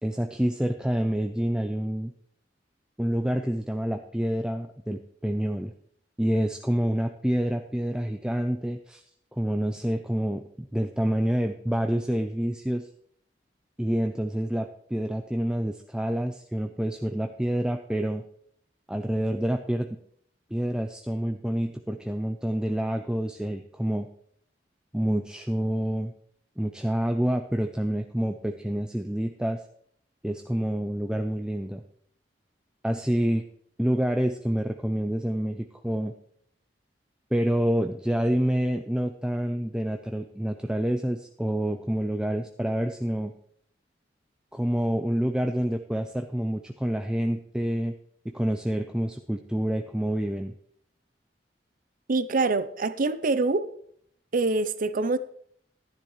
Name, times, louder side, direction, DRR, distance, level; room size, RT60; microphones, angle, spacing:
voice 1, 0.0-2.1 3.0-5.7 6.2-9.0 9.3-12.9 13.8-18.2 18.9-20.0 20.5-24.1 24.9-26.1 26.6-29.6 30.2-31.8 32.8-33.4 33.8-36.1 37.3-43.3 44.5-48.0 48.2-50.6, right 1 dB, 5° right, 0.4 m, -27 dB
voice 2, 52.1-53.7 54.3-55.2, right 3 dB, 50° right, 0.6 m, -25 dB
12.0 x 10.5 x 3.2 m
head